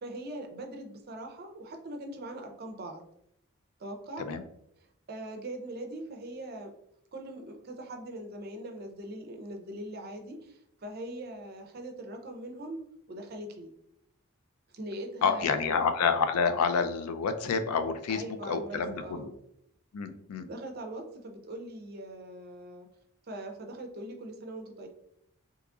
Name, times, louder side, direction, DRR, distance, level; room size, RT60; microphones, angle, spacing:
voice 1, 0.0-3.0 3.8-4.3 5.1-6.7 7.1-12.8 13.1-13.7 14.7-15.8 18.1-19.3 20.5-22.9 23.3-24.9, right 1 dB, 45° right, 4 dB, 0.5 m, -41 dB
voice 2, 15.2-19.3 19.9-20.5, left 5 dB, 80° left, 9 dB, 0.4 m, -28 dB
2.9 x 2.4 x 3.6 m, 0.74 s
head